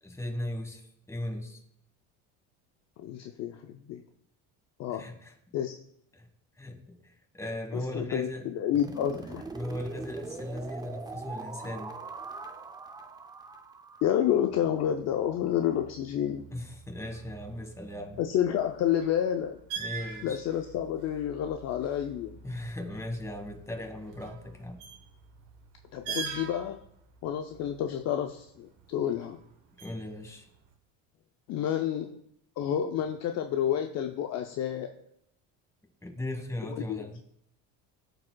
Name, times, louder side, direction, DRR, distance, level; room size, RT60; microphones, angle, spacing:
voice 1, 0.0-1.6 4.9-5.3 6.1-6.3 6.6-8.5 9.5-11.9 16.5-18.2 19.8-20.4 22.4-24.8 29.8-30.5 36.0-37.2, left 1 dB, 10° left, 3 dB, 1.4 m, -38 dB
voice 2, 3.0-4.0 4.8-5.1 5.5-5.7 7.7-9.4 14.0-16.5 18.2-19.6 20.2-22.4 25.9-26.8 27.2-29.4 31.5-32.2 32.6-34.9 36.7-37.1, left 10 dB, 50° left, 5 dB, 0.5 m, -29 dB
sound 1, 8.7-14.7, right 3 dB, 10° right, 0.4 m, -42 dB
sound 2, 14.5-30.7, right 6 dB, 85° right, 1.2 m, -45 dB
13.0 x 4.9 x 2.2 m, 0.71 s
cardioid pair, 115°, 36 cm